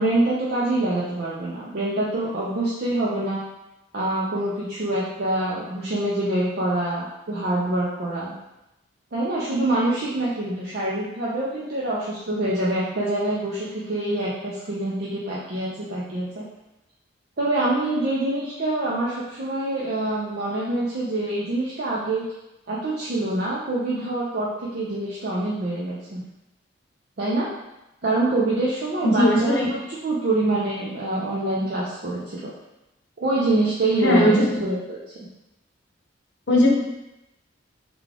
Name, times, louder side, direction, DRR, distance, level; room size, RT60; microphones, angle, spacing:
voice 1, 0.0-3.4 3.9-8.3 9.1-16.4 17.4-22.3 22.7-26.2 27.2-27.5 28.0-29.6 30.0-32.5 33.2-35.0, right 2 dB, 55° right, -7 dB, 0.5 m, -25 dB
voice 2, 29.0-29.7 34.0-34.4 36.5-36.7, left 1 dB, 60° left, -2 dB, 0.8 m, -18 dB
3.6 x 2.3 x 3.3 m, 0.93 s
head